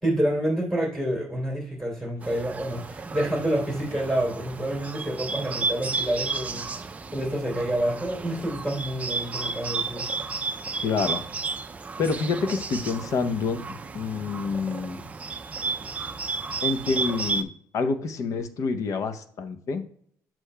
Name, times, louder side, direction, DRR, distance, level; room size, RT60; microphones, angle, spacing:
voice 1, 0.0-10.1, right 1 dB, 5° left, -2 dB, 2.9 m, -28 dB
Bird, 2.2-17.4, right 4 dB, 20° right, 0.4 m, -33 dB
voice 2, 10.8-11.2 12.0-13.6 13.9-15.0 16.6-17.5 17.7-19.8, left 4 dB, 55° left, 9 dB, 0.7 m, -27 dB
8.3 x 6.0 x 2.2 m, 0.63 s
cardioid pair, 125°, 6 cm